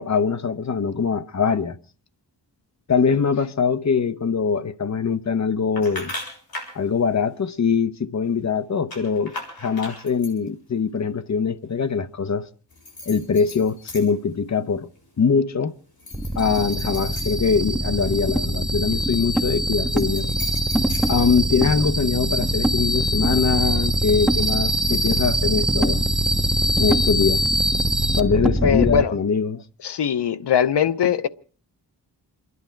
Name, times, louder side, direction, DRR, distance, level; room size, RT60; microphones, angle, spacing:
voice 1, 0.0-1.8 2.9-6.1 6.7-12.5 13.1-14.9 15.2-15.7 16.4-20.3 21.1-26.0 26.8-27.4 28.1-29.6, left 5 dB, 40° left, 0.9 m, -22 dB
sound 1, 5.8-6.8 8.9-10.5 12.7-14.3 14.7-15.2 15.9-18.1 19.7-21.8, left 2 dB, 60° left, 7.4 m, -38 dB
sound 2, 16.1-29.0, right 1 dB, ahead, 1.2 m, -22 dB
voice 2, 28.6-29.1 29.8-31.3, left 8 dB, 80° left, 0.9 m, -21 dB
28.5 x 11.0 x 4.5 m
wide cardioid pair, 85°, 41 cm